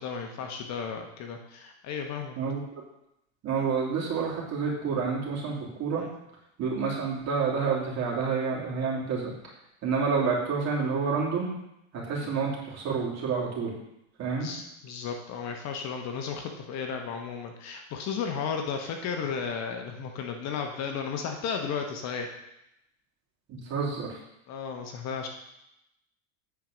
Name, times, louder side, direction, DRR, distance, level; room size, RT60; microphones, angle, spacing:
voice 1, 0.0-2.4 3.6-3.7 6.0-6.1 12.2-12.3 14.3-22.4 24.5-25.3, left 6 dB, 40° left, 4 dB, 1.1 m, -34 dB
voice 2, 2.4-2.8 3.4-6.0 6.6-9.3 9.8-11.5 11.9-13.7 14.2-14.5 23.5-24.2, right 5 dB, 40° right, -3 dB, 2.9 m, -29 dB
9.2 x 4.5 x 5.1 m, 0.84 s
supercardioid pair, 115°, 41 cm